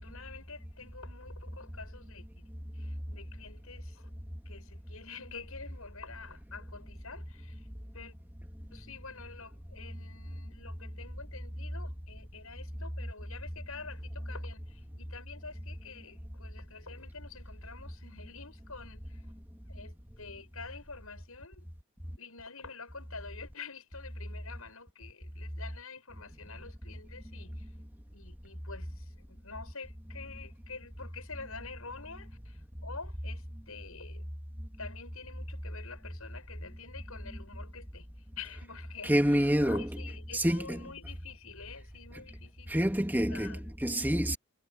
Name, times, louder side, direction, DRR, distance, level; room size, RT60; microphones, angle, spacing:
voice 1, 0.0-2.3 2.7-4.1 4.5-7.7 7.9-8.1 8.7-19.2 19.7-21.6 22.2-27.7 28.1-34.2 34.8-38.1 38.4-42.8 43.2-43.6, left 4 dB, 75° left, 7.6 m, -47 dB
voice 2, 39.0-40.9 42.7-44.4, equal, 10° right, 2.7 m, -28 dB
head